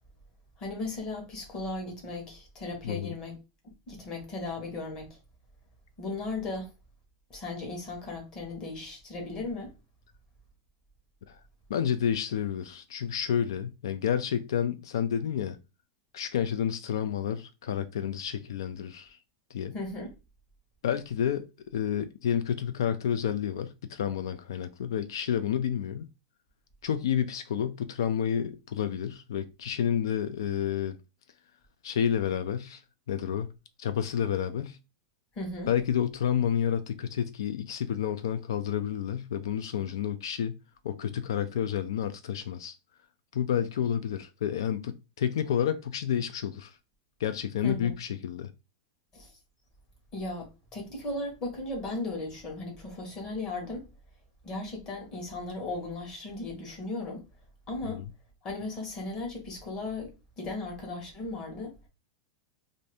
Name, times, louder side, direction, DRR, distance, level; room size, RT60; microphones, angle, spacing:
voice 1, 0.6-3.4 3.9-5.1 6.0-6.7 7.3-9.7 19.7-20.1 35.3-35.7 47.6-47.9 49.1-49.3 50.1-53.9 54.4-57.2 57.7-58.0 58.4-61.7, left 2 dB, 25° left, 1.0 m, -36 dB
voice 2, 2.8-3.1 11.3-11.4 11.7-15.6 16.1-19.2 19.5-19.7 20.8-21.5 21.7-26.1 26.8-31.0 31.8-32.8 33.1-33.5 33.8-34.8 35.7-40.6 40.8-42.8 43.3-46.8 47.2-48.5 57.8-58.0, left 9 dB, 90° left, 0.3 m, -30 dB
2.6 x 2.5 x 3.3 m
supercardioid pair, 165°, 2 cm